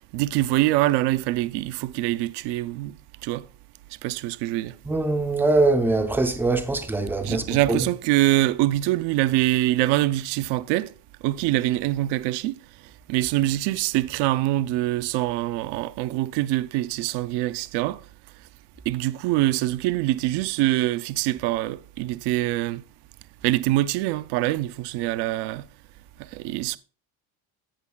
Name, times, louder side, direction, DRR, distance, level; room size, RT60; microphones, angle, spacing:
voice 1, 0.1-2.9 3.2-3.5 4.0-4.8 7.2-10.9 11.2-12.6 13.1-18.0 18.9-22.8 23.4-25.6 26.3-26.8, right 16 dB, 60° right, 0.5 m, -24 dB
voice 2, 4.9-7.8, right 2 dB, 5° right, 0.4 m, -22 dB
16.5 x 5.9 x 2.2 m
cardioid pair, 165°, 48 cm